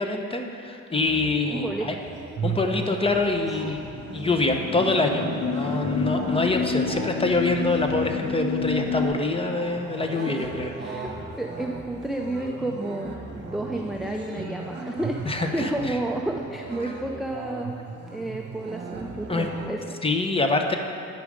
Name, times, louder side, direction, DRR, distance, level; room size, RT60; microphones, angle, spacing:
voice 1, 0.0-1.9 2.4-3.8 4.1-10.7 15.3-16.0 19.3-19.5 20.0-20.8, left 3 dB, 20° left, 4 dB, 0.7 m, -25 dB
sound 1, 0.9-19.7, right 3 dB, 35° right, 1.3 m, -37 dB
voice 2, 1.5-1.9 3.6-3.7 10.1-10.2 10.8-11.1 11.4-17.8 18.1-20.0, right 1 dB, ahead, 1 dB, 0.4 m, -31 dB
sound 2, 3.8-9.1, left 4 dB, 80° left, 0.9 m, -29 dB
9.5 x 5.0 x 5.0 m, 2.5 s
cardioid pair, 90°, 30 cm